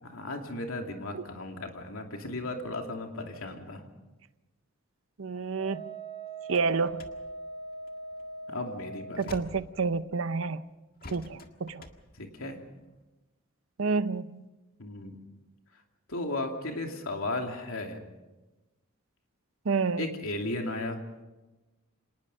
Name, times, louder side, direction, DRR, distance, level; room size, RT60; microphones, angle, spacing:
voice 1, 0.0-3.9 8.5-9.3 12.2-12.7 14.8-15.2 16.1-18.0 20.0-21.0, left 2 dB, 80° left, 2.8 m, -35 dB
voice 2, 5.2-5.9 6.5-7.0 9.2-10.6 11.1-11.8 13.8-14.4 19.7-20.1, right 4 dB, 70° right, 0.7 m, -29 dB
Wind instrument woodwind instrument, 5.6-9.2, right 3 dB, 20° right, 5.7 m, -41 dB
sound 1, 6.5-10.4 11.0-13.0, left 2 dB, 45° left, 1.8 m, -49 dB
26.5 x 19.5 x 5.5 m
head